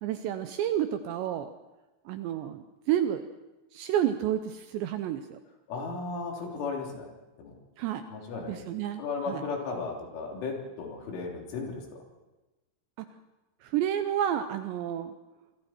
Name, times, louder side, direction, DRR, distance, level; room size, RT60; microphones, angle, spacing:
voice 1, 0.0-1.5 2.1-3.3 3.7-5.4 7.8-8.0 8.5-9.5 13.0-13.1 13.6-15.1, right 10 dB, 80° right, 9 dB, 2.7 m, -30 dB
voice 2, 5.7-7.1 7.4-7.5 8.1-8.7 9.0-11.8, left 4 dB, 70° left, 0 dB, 5.9 m, -35 dB
27.0 x 24.5 x 4.5 m, 1.1 s
omnidirectional pair, 5.8 m